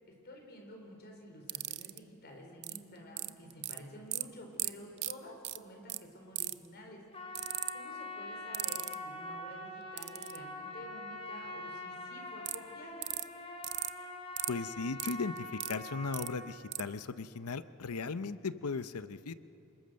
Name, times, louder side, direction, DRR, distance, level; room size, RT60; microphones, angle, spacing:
voice 1, 0.1-7.0 7.4-13.1, left 1 dB, 45° left, 2 dB, 4.3 m, -51 dB
sound 1, 1.5-2.0 2.6-2.8 3.2-3.8 4.1-4.2 4.6-4.7 5.0-5.1 5.4-5.6 5.9-6.0 6.4-6.7 7.4-7.7 8.5-8.9 10.0-10.4 12.5-12.6 13.0-13.2 13.6-13.9 14.4-14.5 15.0-15.8 16.1-16.3 16.7-16.8, right 15 dB, 50° right, 0.6 m, -35 dB
Trumpet, 7.1-16.6, left 2 dB, 25° left, 2.3 m, -44 dB
voice 2, 14.5-19.3, left 4 dB, 80° left, 13 dB, 0.7 m, -37 dB
27.0 x 21.5 x 6.5 m, 2.8 s
head